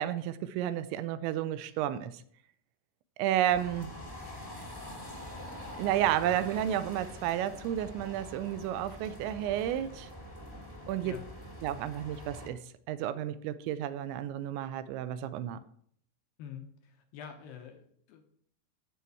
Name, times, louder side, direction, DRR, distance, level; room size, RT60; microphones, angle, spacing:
voice 1, 0.0-2.2 3.2-3.9 5.8-10.1 10.9-11.1 11.6-12.6 12.9-15.6, right 11 dB, 85° right, 13 dB, 2.9 m, -31 dB
sound 1, 3.5-12.5, left 1 dB, 15° left, 0.7 m, -45 dB
voice 2, 16.4-18.2, left 8 dB, 75° left, 5 dB, 2.2 m, -46 dB
13.0 x 4.5 x 8.4 m, 0.63 s
omnidirectional pair, 5.4 m